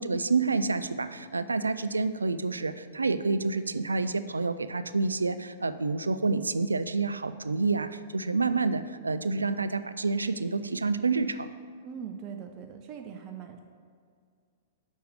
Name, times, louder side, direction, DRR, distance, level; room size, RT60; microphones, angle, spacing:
voice 1, 0.0-11.5, right 3 dB, 85° right, 12 dB, 0.3 m, -28 dB
voice 2, 11.8-13.6, right 7 dB, 35° right, 4 dB, 0.5 m, -41 dB
6.2 x 4.7 x 6.6 m, 2.1 s
figure-of-eight pair, 105°, 0 cm